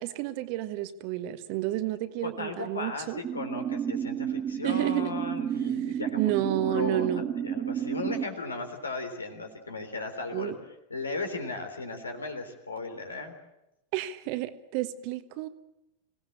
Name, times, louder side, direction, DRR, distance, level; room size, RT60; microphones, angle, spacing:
voice 1, 0.0-3.2 4.6-5.1 5.8-7.3 10.3-10.6 13.9-15.5, right 14 dB, 45° right, 12 dB, 1.4 m, -31 dB
voice 2, 2.2-10.5 10.9-13.3, left 3 dB, 75° left, 6 dB, 3.6 m, -36 dB
sound 1, 3.2-8.2, right 9 dB, 25° right, 1.4 m, -31 dB
26.0 x 18.0 x 8.8 m, 0.91 s
figure-of-eight pair, 90°, 0 cm